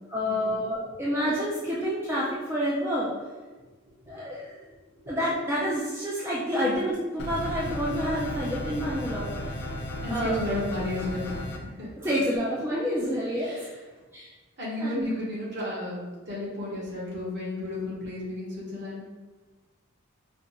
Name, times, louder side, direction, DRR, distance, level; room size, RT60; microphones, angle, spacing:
voice 1, 0.1-3.1 4.1-4.6 5.1-9.3 10.1-10.5 12.0-13.5 14.1-14.3 14.8-15.0, equal, 10° right, -7 dB, 0.4 m, -28 dB
sound 1, 7.2-11.6, left 1 dB, 50° left, 0.5 m, -34 dB
voice 2, 10.0-11.4 11.8-11.9 13.4-13.7 14.6-19.1, left 1 dB, 50° right, -6 dB, 1.4 m, -33 dB
4.9 x 2.4 x 3.0 m, 1.3 s
head